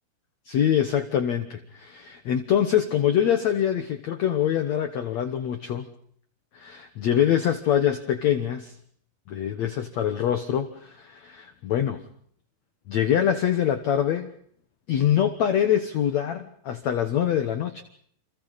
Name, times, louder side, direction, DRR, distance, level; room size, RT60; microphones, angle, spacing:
voice 1, 0.4-5.9 6.5-8.7 9.3-12.0 12.9-14.3 14.9-17.8, left 9 dB, 75° left, 8 dB, 1.6 m, -24 dB
30.0 x 28.0 x 4.2 m, 0.62 s
omnidirectional pair, 5.2 m